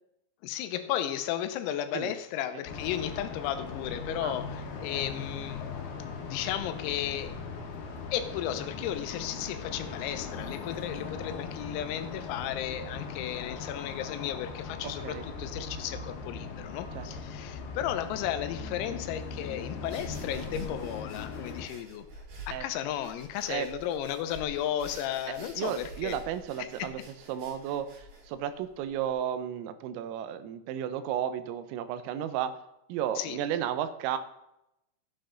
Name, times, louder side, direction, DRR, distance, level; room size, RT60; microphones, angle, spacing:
voice 1, 0.4-5.6 6.2-7.4 8.1-22.1 22.5-26.2 26.6-27.1 33.2-33.4, left 11 dB, 85° left, 9 dB, 3.6 m, -34 dB
sound 1, 2.6-21.7, left 5 dB, 65° left, 2.8 m, -39 dB
voice 2, 14.8-15.2 16.9-17.1 22.5-22.7 23.5-23.7 25.6-27.0 27.3-32.6 32.9-34.2, right 10 dB, 85° right, 11 dB, 3.3 m, -33 dB
sound 2, 19.8-29.1, right 1 dB, 55° right, 3.7 m, -48 dB
14.0 x 8.9 x 3.9 m, 0.85 s
omnidirectional pair, 6.0 m